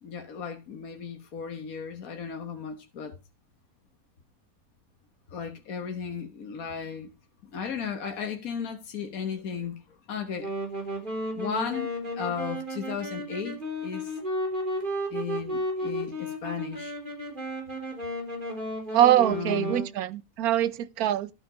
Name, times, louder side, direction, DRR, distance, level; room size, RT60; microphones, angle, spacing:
voice 1, 0.0-3.1 5.3-7.1 7.5-10.5 11.3-14.2 15.1-16.9 19.3-19.8, left 6 dB, 75° left, 1.7 m, -35 dB
Wind instrument woodwind instrument, 10.4-19.9, equal, 35° right, 3.7 m, -33 dB
voice 2, 18.9-21.3, right 12 dB, 90° right, 1.2 m, -23 dB
12.5 x 5.2 x 5.0 m
omnidirectional pair, 1.5 m